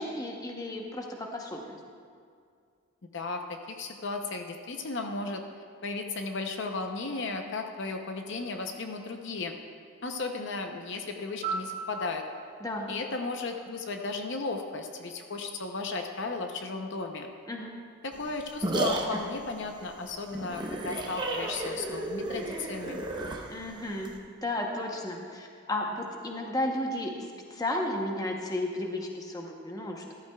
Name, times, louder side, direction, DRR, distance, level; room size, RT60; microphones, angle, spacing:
voice 1, 0.0-1.8 12.6-12.9 17.5-17.8 23.5-24.1 24.4-30.1, left 1 dB, 15° left, 1 dB, 0.8 m, -33 dB
voice 2, 3.1-5.4 5.8-9.5 10.0-12.2 12.9-17.3 18.0-23.0, left 3 dB, 55° left, 4 dB, 0.6 m, -35 dB
Piano, 11.4-14.4 22.5-22.7, right 4 dB, 40° right, 2.0 m, -40 dB
sound 1, 18.1-24.2, right 2 dB, 20° right, 0.7 m, -33 dB
13.5 x 13.5 x 2.3 m, 2.2 s
head